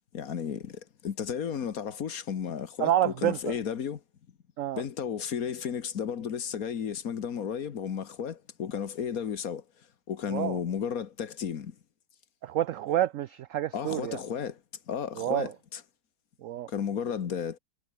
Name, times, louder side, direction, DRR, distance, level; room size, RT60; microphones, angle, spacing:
voice 1, 0.1-4.0 4.7-9.6 10.1-11.7 13.7-14.6 14.9-15.8 16.7-17.6, left 7 dB, 55° left, 1.6 m, -33 dB
voice 2, 2.8-3.5 4.6-4.8 10.3-10.6 12.4-14.2 15.2-15.5 16.4-16.7, right 12 dB, 85° right, 0.7 m, -28 dB
omnidirectional pair, 1.9 m